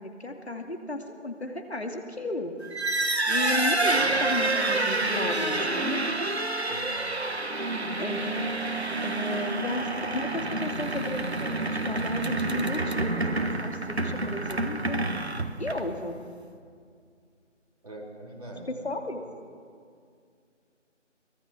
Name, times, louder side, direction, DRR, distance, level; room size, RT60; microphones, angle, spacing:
voice 1, 0.0-2.5 3.3-6.0 8.0-15.0 15.6-16.2 18.7-19.2, left 2 dB, 60° left, 3 dB, 2.5 m, -34 dB
sound 1, 2.6-16.0, right 2 dB, 60° right, 1.6 m, -28 dB
voice 2, 6.7-7.2 17.8-18.8, right 1 dB, 30° right, -4 dB, 4.0 m, -43 dB
23.5 x 21.5 x 6.0 m, 2.2 s
figure-of-eight pair, 175°, 37 cm